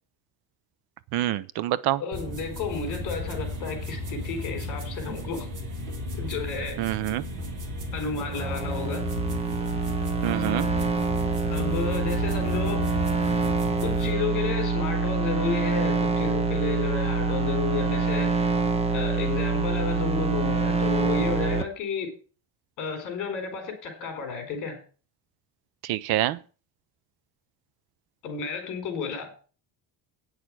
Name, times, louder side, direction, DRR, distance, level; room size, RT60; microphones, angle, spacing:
voice 1, 1.1-2.0 6.8-7.2 10.2-10.7 25.8-26.4, right 14 dB, 65° right, 0.7 m, -26 dB
voice 2, 2.0-5.5 6.1-6.9 7.9-9.1 11.5-12.9 13.8-18.6 18.9-22.2 22.8-24.8 28.2-29.4, left 5 dB, 50° left, 4.3 m, -32 dB
sound 1, 2.1-14.1, left 1 dB, 45° right, 2.4 m, -34 dB
sound 2, 8.2-21.6, right 3 dB, 15° right, 0.8 m, -26 dB
9.6 x 6.6 x 7.5 m
cardioid pair, 180°, 41 cm